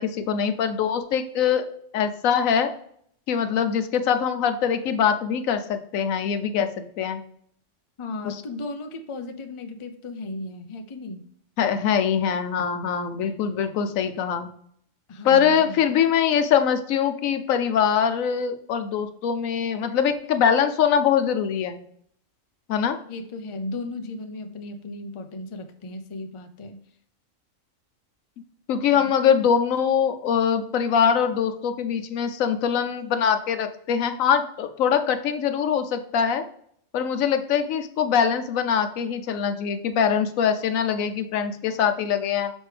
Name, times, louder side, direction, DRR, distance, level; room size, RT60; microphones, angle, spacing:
voice 1, 0.0-1.7 1.9-2.7 3.3-7.2 8.2-8.3 11.6-14.5 15.2-21.8 22.7-23.0 28.7-36.4 36.9-42.5, left 7 dB, 85° left, 9 dB, 1.1 m, -23 dB
voice 2, 8.0-11.3 15.1-15.9 23.1-26.8 28.9-29.1, left 2 dB, 35° left, 6 dB, 0.5 m, -35 dB
6.3 x 5.2 x 3.3 m, 0.66 s
omnidirectional pair, 1.4 m